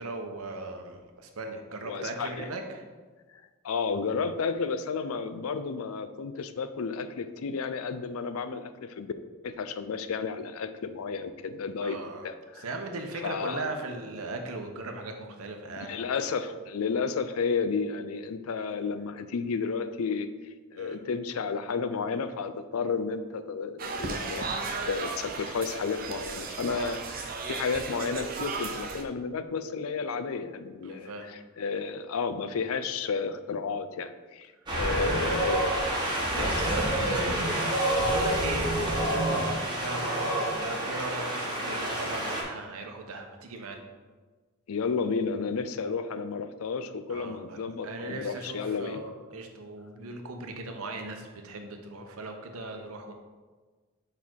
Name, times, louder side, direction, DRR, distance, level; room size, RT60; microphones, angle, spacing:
voice 1, 0.0-2.8 11.8-12.3 12.5-16.0 20.8-21.0 30.8-31.3 35.0-35.2 36.3-43.8 47.1-47.6 47.8-53.1, right 2 dB, 80° right, 4 dB, 0.8 m, -38 dB
voice 2, 1.8-2.5 3.6-9.1 9.4-12.0 12.2-12.7 13.2-13.7 15.9-20.3 20.7-35.8 36.3-36.6 44.7-49.0, left 5 dB, 80° left, 11 dB, 0.4 m, -32 dB
sound 1, 23.8-29.0, right 4 dB, 40° right, 0.5 m, -35 dB
Wind, 34.7-42.4, right 1 dB, 20° right, 1.2 m, -28 dB
5.4 x 4.3 x 4.6 m, 1.4 s
head